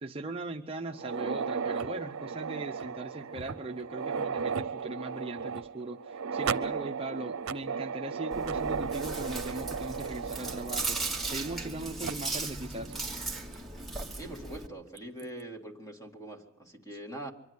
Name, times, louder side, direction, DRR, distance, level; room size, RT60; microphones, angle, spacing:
voice 1, 0.0-13.0, right 2 dB, 25° right, 3 dB, 0.7 m, -39 dB
sound 1, 0.9-11.7 12.0-12.1 12.9-13.0 13.5-13.6 15.0-15.2, right 5 dB, 80° right, 0.6 m, -35 dB
Chewing mastication, 8.3-14.7, right 3 dB, ahead, 1.5 m, -37 dB
voice 2, 14.1-17.3, right 1 dB, 15° left, 2 dB, 2.2 m, -43 dB
24.0 x 11.0 x 9.6 m, 1.0 s
head